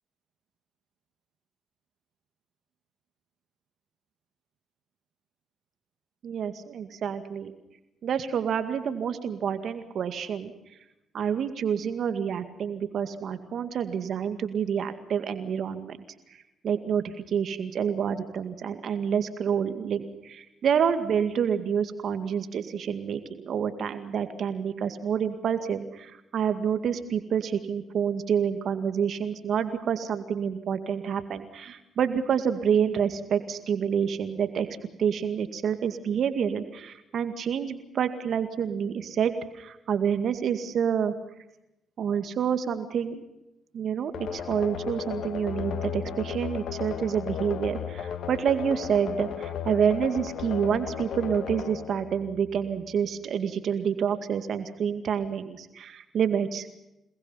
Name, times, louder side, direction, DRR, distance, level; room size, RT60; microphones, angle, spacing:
voice 1, 6.2-7.5 8.0-10.5 11.1-16.0 16.6-34.7 35.0-41.1 42.0-43.2 43.7-56.7, right 7 dB, 65° right, 9 dB, 2.1 m, -28 dB
sound 1, 44.1-52.8, left 8 dB, 70° left, 1.4 m, -35 dB
28.0 x 20.0 x 5.8 m, 0.90 s
supercardioid pair, 55°, 0 cm